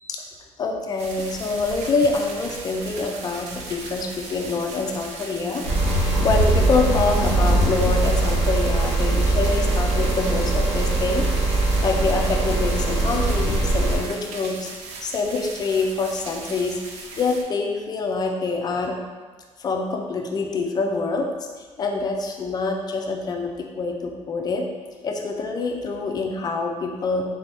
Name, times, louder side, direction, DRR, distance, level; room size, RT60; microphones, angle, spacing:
voice 1, 0.6-14.7 15.0-19.0 19.6-21.3 21.6-24.7 25.0-27.2, left 3 dB, 35° left, 2 dB, 0.5 m, -26 dB
sound 1, 1.0-17.4, right 3 dB, 75° right, 0.6 m, -38 dB
sound 2, 5.6-14.0, right 2 dB, 55° right, 1.1 m, -21 dB
4.1 x 2.7 x 3.6 m, 1.4 s
cardioid pair, 130°, 12 cm